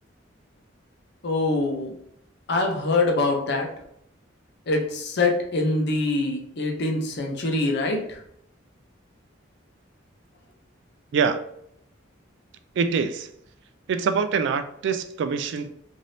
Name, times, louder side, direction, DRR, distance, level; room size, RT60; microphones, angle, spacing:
voice 1, 1.2-1.9 2.5-3.7 4.7-8.2, left 2 dB, 60° left, 2 dB, 0.6 m, -24 dB
voice 2, 12.8-13.3 13.9-15.7, right 5 dB, 65° right, 10 dB, 0.3 m, -24 dB
3.3 x 2.6 x 2.7 m, 0.71 s
head